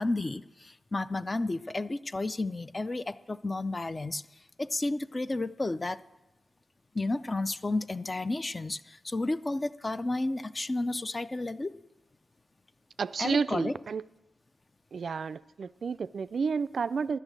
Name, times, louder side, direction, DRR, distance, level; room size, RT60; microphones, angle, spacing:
voice 1, 0.0-4.2 4.6-6.0 6.9-11.7 13.2-13.7, left 2 dB, 25° left, 12 dB, 0.3 m, -32 dB
voice 2, 13.0-14.0 14.9-17.2, right 5 dB, 60° right, 15 dB, 0.3 m, -31 dB
11.5 x 6.3 x 8.9 m, 0.99 s
wide cardioid pair, 90°, 0 cm